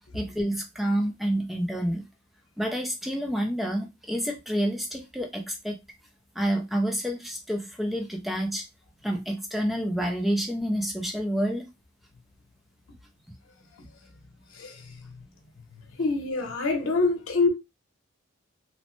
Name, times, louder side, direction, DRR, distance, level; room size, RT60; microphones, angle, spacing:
voice 1, 0.1-2.0 2.6-5.8 6.3-8.7 9.0-11.7, equal, ahead, 0.4 m, -28 dB
voice 2, 14.5-15.2 15.9-17.5, left 3 dB, 75° left, 0.8 m, -26 dB
3.0 x 2.0 x 3.0 m
head